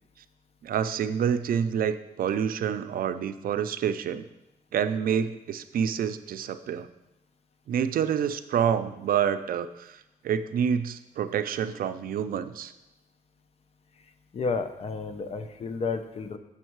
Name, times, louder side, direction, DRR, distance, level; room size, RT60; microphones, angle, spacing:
voice 1, 0.6-4.3 4.7-6.9 7.7-10.0 10.2-12.7, right 8 dB, 75° right, 10 dB, 0.4 m, -27 dB
voice 2, 14.3-16.4, left 4 dB, 45° left, 8 dB, 0.6 m, -31 dB
7.2 x 6.3 x 4.6 m, 0.92 s
wide cardioid pair, 150°, 15 cm